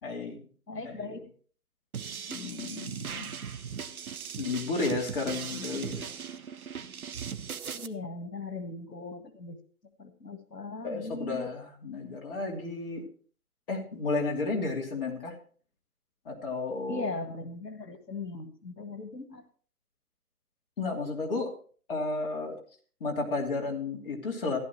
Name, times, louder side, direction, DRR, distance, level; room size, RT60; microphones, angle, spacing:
voice 1, 0.0-1.2 2.3-3.3 4.4-6.1 10.8-13.0 13.7-15.4 16.2-17.0 20.8-21.5 21.9-22.6 23.0-24.6, left 3 dB, 35° left, 0 dB, 2.8 m, -33 dB
voice 2, 0.7-1.2 7.7-9.6 10.0-11.5 16.9-19.4, left 3 dB, 90° left, 8 dB, 1.7 m, -38 dB
sound 1, 1.9-7.9, right 7 dB, 65° right, 0.9 m, -38 dB
14.5 x 11.5 x 3.1 m, 0.43 s
figure-of-eight pair, 150°, 47 cm